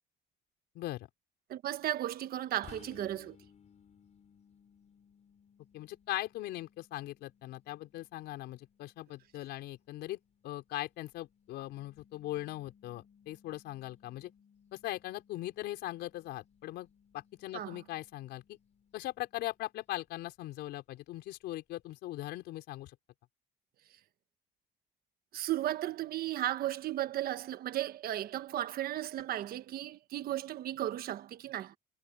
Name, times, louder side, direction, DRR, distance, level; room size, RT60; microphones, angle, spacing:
voice 1, 0.7-1.1 5.7-14.3 14.7-16.9 17.1-18.6 18.9-22.9, left 16 dB, 80° left, 4.6 m, -40 dB
voice 2, 1.5-3.4 17.5-17.8 25.3-31.8, right 13 dB, 65° right, 1.3 m, -35 dB
sound 1, 2.6-20.1, left 7 dB, 40° left, 6.1 m, -62 dB
cardioid pair, 110°, 17 cm